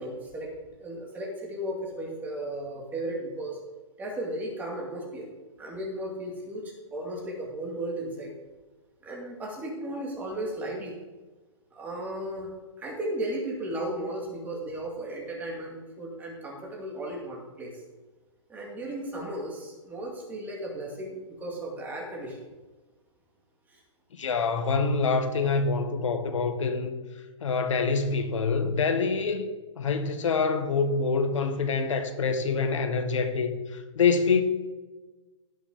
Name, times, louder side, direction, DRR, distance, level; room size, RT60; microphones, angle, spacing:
voice 1, 0.0-3.6 4.0-5.3 5.6-8.3 9.0-11.0 11.7-12.5 12.8-17.7 18.5-22.4 23.7-23.8, right 1 dB, 10° right, -1 dB, 2.2 m, -35 dB
voice 2, 24.2-26.9 27.4-29.5 29.8-34.4, left 4 dB, 80° left, 6 dB, 1.7 m, -26 dB
17.0 x 6.2 x 3.8 m, 1.2 s
hypercardioid pair, 155°, 16 cm